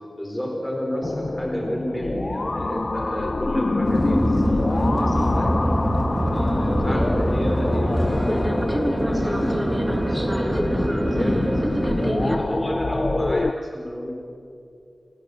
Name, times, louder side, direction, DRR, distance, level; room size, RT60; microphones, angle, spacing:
voice 1, 0.1-5.6 6.3-11.7 12.2-14.1, equal, 10° left, 0 dB, 4.1 m, -30 dB
sound 1, 1.0-13.5, left 2 dB, 35° left, 0.6 m, -27 dB
sound 2, 3.8-12.4, equal, 10° right, 3.3 m, -23 dB
28.5 x 19.5 x 8.3 m, 2.6 s
wide cardioid pair, 110°, 0 cm